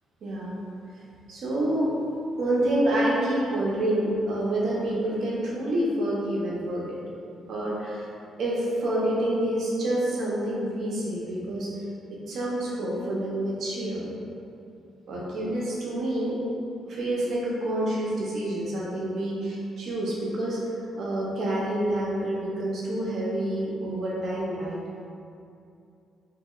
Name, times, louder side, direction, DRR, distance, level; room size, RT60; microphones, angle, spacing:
voice 1, 0.2-0.5 1.3-1.9 2.4-7.0 7.5-8.1 8.4-11.7 12.1-14.1 15.1-16.4 16.9-20.6 21.0-24.8, right 1 dB, 65° right, -5 dB, 0.7 m, -27 dB
2.7 x 2.2 x 3.0 m, 2.6 s
cardioid pair, 90°, 0 cm